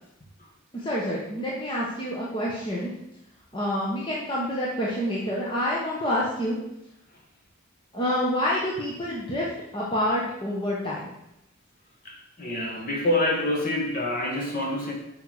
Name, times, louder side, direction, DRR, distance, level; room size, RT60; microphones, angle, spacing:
voice 1, 0.7-2.9 3.5-6.6 7.9-9.5 9.7-11.1, equal, 20° left, -5 dB, 1.2 m, -27 dB
voice 2, 12.0-14.9, left 1 dB, 40° left, 0 dB, 1.8 m, -27 dB
8.4 x 5.7 x 5.0 m, 0.84 s
head